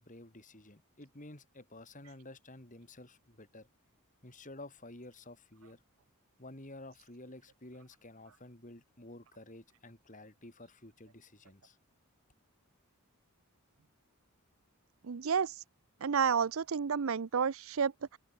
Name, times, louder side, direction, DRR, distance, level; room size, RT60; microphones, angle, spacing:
voice 1, 0.0-3.7 4.2-5.8 6.4-11.8, left 2 dB, 35° left, 3.9 m, -51 dB
voice 2, 15.0-15.5 16.0-18.2, right 6 dB, 70° right, 0.5 m, -31 dB
open air
head